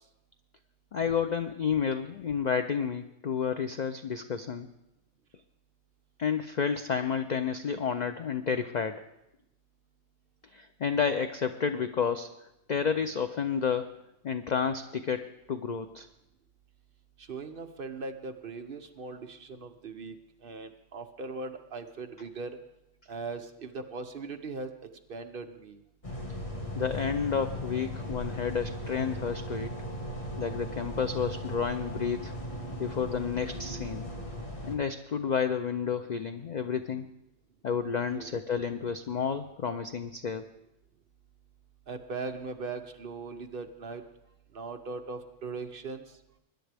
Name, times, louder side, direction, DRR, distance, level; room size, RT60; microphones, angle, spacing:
voice 1, 0.9-4.7 6.2-9.0 10.5-12.3 12.7-13.9 14.2-16.1 26.7-29.7 30.4-32.3 32.8-34.1 34.6-37.1 37.6-40.5, left 6 dB, 80° left, 9 dB, 0.4 m, -30 dB
voice 2, 17.2-20.2 20.4-22.6 23.1-25.8 38.1-38.3 41.9-44.0 44.5-46.2, right 4 dB, 50° right, 6 dB, 0.9 m, -39 dB
sound 1, 26.0-34.8, equal, 25° left, 1.5 m, -38 dB
20.5 x 10.5 x 3.4 m, 0.86 s
omnidirectional pair, 1.4 m